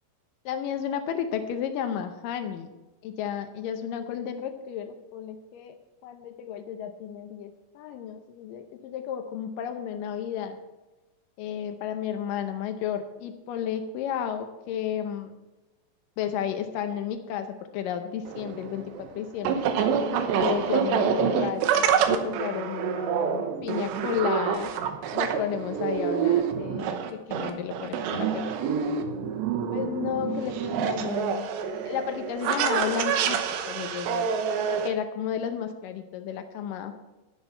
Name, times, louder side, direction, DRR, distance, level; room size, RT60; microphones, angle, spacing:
voice 1, 0.5-2.7 3.0-5.8 6.0-10.6 11.4-15.3 16.2-19.7 20.0-24.7 25.1-28.5 29.7-31.6 31.9-34.3 34.7-36.9, left 9 dB, 85° left, 7 dB, 1.9 m, -32 dB
sound 1, 18.3-34.9, right 7 dB, 85° right, 3.2 m, -27 dB
12.5 x 10.5 x 4.4 m, 1.1 s
omnidirectional pair, 4.9 m